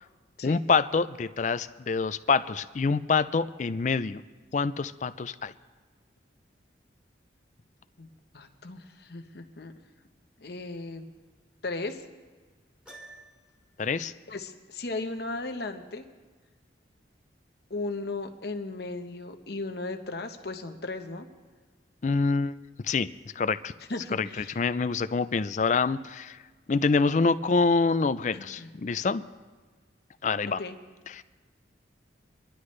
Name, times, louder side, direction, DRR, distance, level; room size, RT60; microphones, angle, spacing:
voice 1, 0.4-4.2 4.5-5.5 13.8-14.1 22.0-23.1 23.4-23.7 24.1-26.4 26.7-29.2 30.2-30.6 31.1-31.2, left 4 dB, 40° left, 13 dB, 0.4 m, -26 dB
voice 2, 8.0-9.7 10.4-11.1 11.6-12.0 14.3-16.0 17.7-21.3 23.9-24.6 28.3-28.7 30.6-30.7, left 2 dB, 60° left, 5 dB, 1.0 m, -36 dB
Piano, 12.9-13.7, right 2 dB, 5° right, 2.2 m, -49 dB
24.5 x 11.5 x 3.2 m, 1.4 s
head